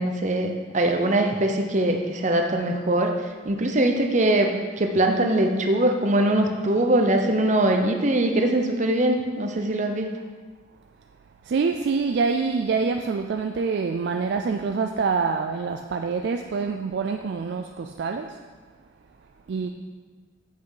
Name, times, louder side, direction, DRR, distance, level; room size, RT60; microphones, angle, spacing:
voice 1, 0.0-3.1 3.4-10.1 19.6-19.7, right 1 dB, 40° right, 4 dB, 0.8 m, -22 dB
voice 2, 11.4-18.4 19.5-19.7, right 5 dB, 60° right, 5 dB, 0.3 m, -26 dB
7.6 x 5.8 x 4.9 m, 1.4 s
head